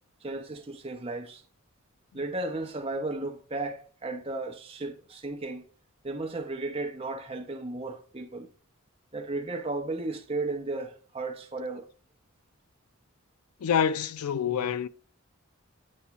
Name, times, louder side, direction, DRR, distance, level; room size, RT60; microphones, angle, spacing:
voice 1, 0.2-1.4 2.1-5.7 6.0-8.5 9.1-11.9, right 2 dB, 25° right, 0.7 m, -34 dB
voice 2, 13.6-14.9, left 8 dB, 80° left, 0.4 m, -26 dB
8.5 x 4.6 x 2.9 m
head